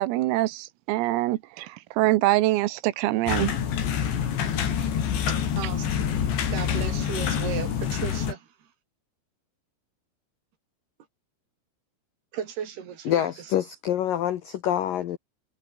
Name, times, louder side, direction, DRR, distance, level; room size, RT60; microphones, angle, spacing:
voice 1, 0.0-3.5, right 17 dB, 90° right, 3.9 m, -24 dB
sound 1, 3.3-8.3, left 8 dB, 60° left, 5.4 m, -26 dB
voice 2, 5.3-8.5 12.3-13.3, right 8 dB, 55° right, 4.5 m, -36 dB
voice 3, 13.1-15.2, left 11 dB, 85° left, 1.9 m, -26 dB
omnidirectional pair, 5.9 m